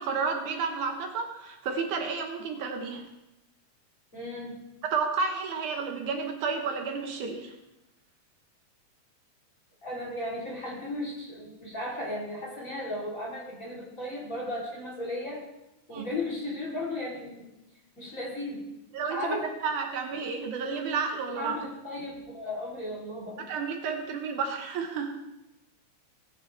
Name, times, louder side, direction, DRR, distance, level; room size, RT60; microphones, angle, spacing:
voice 1, 0.0-3.1 4.8-7.5 15.9-16.1 18.9-19.4 19.6-21.6 23.4-25.1, right 5 dB, 70° right, 4 dB, 2.4 m, -31 dB
voice 2, 4.1-4.6 9.8-15.4 15.9-17.5 18.0-18.6 19.0-19.5 21.4-23.4, left 1 dB, 25° left, -4 dB, 3.2 m, -35 dB
18.5 x 9.8 x 3.3 m, 0.92 s
omnidirectional pair, 3.8 m